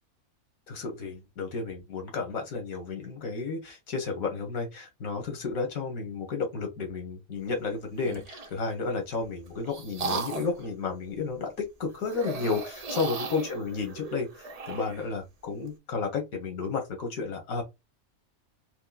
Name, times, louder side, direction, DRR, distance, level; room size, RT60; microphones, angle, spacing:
voice 1, 0.7-17.6, left 4 dB, 85° left, 1.6 m, -32 dB
sound 1, 7.9-8.6 9.2-10.7 12.0-15.1, right 4 dB, 50° right, 0.4 m, -36 dB
3.7 x 3.1 x 2.4 m
omnidirectional pair, 1.4 m